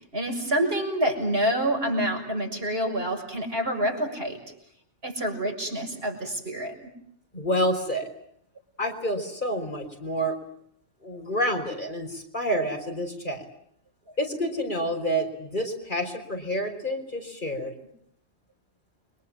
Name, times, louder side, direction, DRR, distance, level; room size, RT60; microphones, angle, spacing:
voice 1, 0.1-4.4 5.0-6.9, right 1 dB, 65° right, 3 dB, 6.9 m, -27 dB
voice 2, 7.3-8.1 8.8-10.4 11.0-13.4 14.2-17.7, equal, 50° left, 4 dB, 4.9 m, -28 dB
29.5 x 25.0 x 7.5 m, 0.70 s
omnidirectional pair, 1.1 m